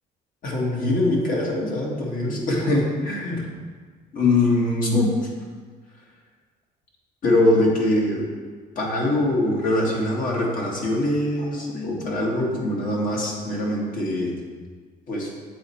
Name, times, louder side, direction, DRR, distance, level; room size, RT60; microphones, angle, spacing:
voice 1, 0.4-3.4 4.1-5.3 7.2-8.3 8.8-14.4 15.1-15.3, left 1 dB, 55° left, -2 dB, 1.8 m, -23 dB
7.7 x 4.2 x 4.5 m, 1.5 s
cardioid pair, 110°, 17 cm